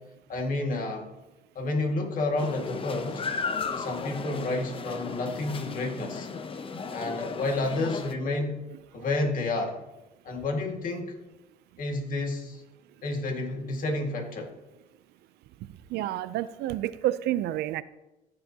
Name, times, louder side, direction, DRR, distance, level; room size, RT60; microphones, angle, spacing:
voice 1, 0.3-1.1 1.6-3.2 3.7-6.3 6.9-8.6 8.9-9.8 10.3-11.1 11.8-12.6 13.0-14.5, left 2 dB, 55° left, 2 dB, 1.9 m, -30 dB
sound 1, 2.4-8.1, left 5 dB, 30° left, 0.7 m, -35 dB
voice 2, 15.9-17.8, right 13 dB, 80° right, 15 dB, 0.5 m, -29 dB
14.5 x 6.9 x 2.8 m, 1.0 s
cardioid pair, 110°, 17 cm